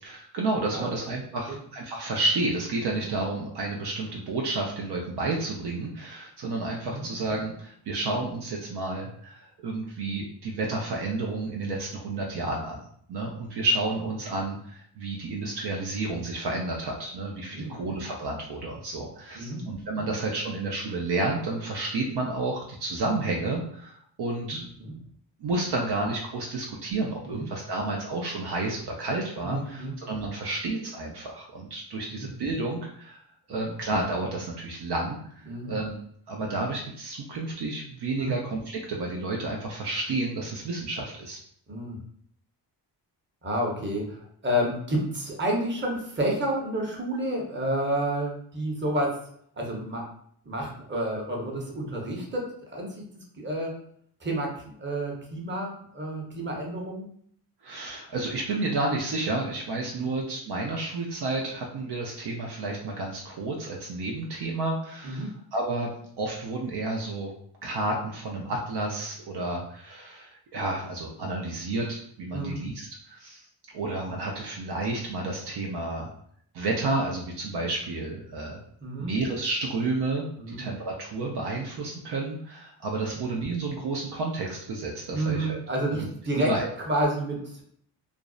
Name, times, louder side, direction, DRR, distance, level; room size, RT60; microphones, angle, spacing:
voice 1, 0.0-12.8 13.1-24.6 25.4-33.2 33.5-36.0 36.3-41.4 57.6-65.9 66.2-67.3 67.6-73.5 73.7-76.1 76.5-78.6 79.0-85.6 86.4-86.7, right 2 dB, 65° right, -1 dB, 0.5 m, -31 dB
voice 2, 24.4-24.9 27.2-27.5 29.4-29.9 32.1-32.3 33.5-33.7 35.5-35.7 38.2-38.3 41.7-42.0 43.4-49.2 49.6-50.0 50.5-52.9 53.4-53.8 54.2-57.1 59.9-60.1 65.0-65.3 72.3-72.6 78.8-79.1 80.4-80.6 83.1-83.2 85.1-86.5 86.9-87.6, right 1 dB, 25° right, -1 dB, 0.8 m, -30 dB
2.5 x 2.0 x 2.4 m, 0.64 s
cardioid pair, 55°, 45 cm